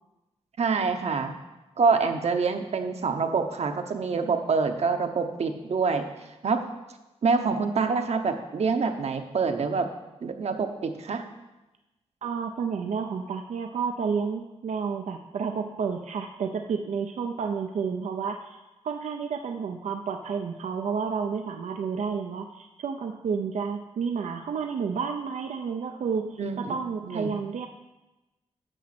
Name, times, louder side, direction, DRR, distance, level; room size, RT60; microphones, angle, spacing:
voice 1, 0.6-1.3 1.8-6.1 6.4-6.6 7.2-9.9 10.2-11.2 26.4-26.7 27.0-27.3, right 4 dB, 65° right, 6 dB, 0.9 m, -26 dB
voice 2, 12.2-27.7, right 6 dB, 85° right, 5 dB, 0.6 m, -31 dB
9.1 x 6.1 x 5.9 m, 1.0 s
cardioid pair, 75°, 12 cm